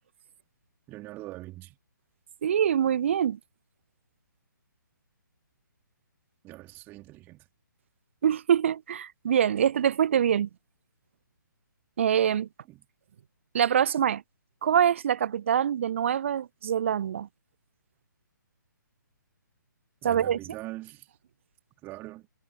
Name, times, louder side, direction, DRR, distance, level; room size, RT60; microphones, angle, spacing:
voice 1, 0.9-1.8 6.4-7.5 12.7-12.9 20.0-21.1 21.8-22.3, right 18 dB, 20° right, 3.6 m, -42 dB
voice 2, 2.4-3.4 8.2-10.5 12.0-12.5 13.5-14.2 14.6-17.3 20.0-20.4, right 9 dB, 35° right, 0.4 m, -24 dB
figure-of-eight pair, 135°, 11 cm